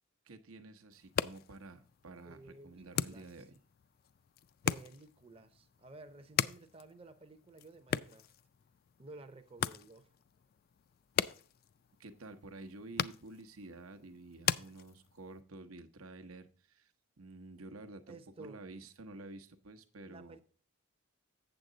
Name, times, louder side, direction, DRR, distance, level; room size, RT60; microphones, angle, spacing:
voice 1, 0.2-3.6 12.0-16.9 17.2-20.4, right 2 dB, 90° right, 0.9 m, -50 dB
sound 1, 0.9-15.4, left 9 dB, 45° left, 0.3 m, -40 dB
voice 2, 2.2-3.3 4.6-8.3 9.0-10.1 18.1-18.6 20.0-20.4, right 2 dB, 25° right, 0.6 m, -54 dB
8.0 x 7.3 x 3.8 m
head